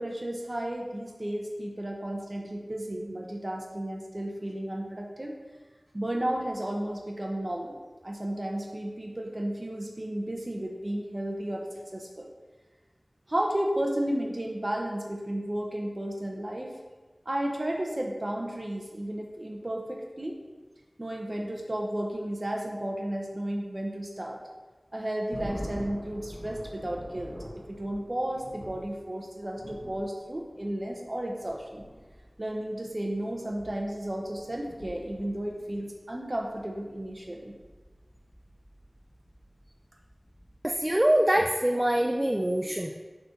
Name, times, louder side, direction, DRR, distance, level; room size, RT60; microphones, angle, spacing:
voice 1, 0.0-5.3 5.9-7.8 8.0-11.7 11.9-12.3 13.3-16.7 17.3-20.4 21.0-24.4 24.9-27.3 27.7-31.8 32.4-37.6, right 1 dB, 40° right, 0 dB, 1.0 m, -33 dB
sound 1, 25.3-41.0, equal, 45° left, 1.3 m, -46 dB
voice 2, 40.6-43.0, right 1 dB, 25° right, 3 dB, 0.4 m, -24 dB
6.6 x 3.9 x 5.8 m, 1.3 s
wide cardioid pair, 50°, 0 cm